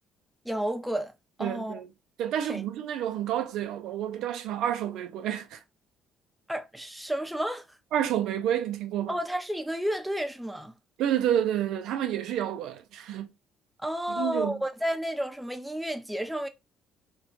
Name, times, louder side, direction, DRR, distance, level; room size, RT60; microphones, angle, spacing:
voice 1, 0.4-1.1 1.4-1.7 2.5-2.6 6.5-7.7 9.1-10.7 13.8-16.5, equal, 5° right, 0.5 m, -31 dB
voice 2, 1.4-1.9 2.2-5.6 7.9-9.2 11.0-13.3 14.1-14.5, right 10 dB, 75° right, 0.4 m, -29 dB
2.9 x 2.2 x 2.6 m
supercardioid pair, 75°, 0 cm